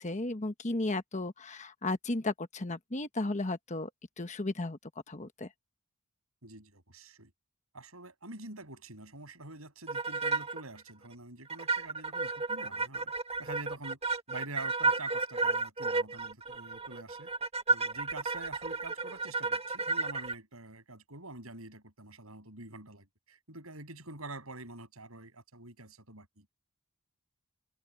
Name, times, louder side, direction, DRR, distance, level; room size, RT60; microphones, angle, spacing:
voice 1, 0.0-3.9 4.2-4.8 5.1-5.5, left 2 dB, 35° left, 1.2 m, -34 dB
voice 2, 6.4-7.3 7.7-13.1 13.4-14.0 14.3-17.3 17.7-26.5, right 2 dB, 75° right, 7.8 m, -47 dB
sound 1, 9.9-10.6 10.9-11.0 11.5-20.4, right 4 dB, 30° right, 1.3 m, -32 dB
head